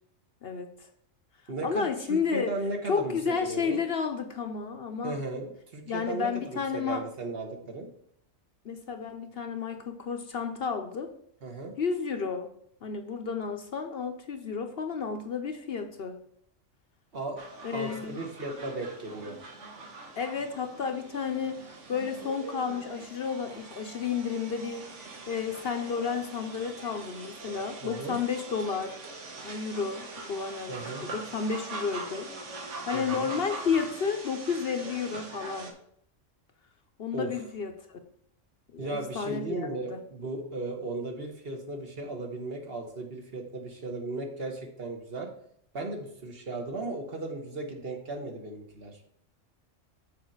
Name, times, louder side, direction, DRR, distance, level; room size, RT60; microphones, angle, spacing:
voice 1, 0.4-0.9 1.6-2.6 2.9-5.2 5.9-7.0 8.6-11.1 11.8-12.5 12.8-16.2 17.6-18.2 20.2-21.6 21.9-24.9 25.3-29.0 29.4-35.7 37.0-38.0 38.7-40.0, left 6 dB, 55° left, 6 dB, 0.9 m, -32 dB
voice 2, 1.5-3.2 3.4-3.8 5.0-7.9 11.4-11.7 17.1-17.4 17.7-19.4 27.8-28.2 30.7-31.1 32.9-33.3 37.1-37.3 38.8-45.3 45.7-49.0, right 2 dB, 50° right, 2 dB, 1.5 m, -36 dB
sound 1, 17.4-35.7, right 3 dB, 70° right, 1.5 m, -43 dB
6.8 x 4.3 x 6.4 m, 0.68 s
omnidirectional pair, 1.3 m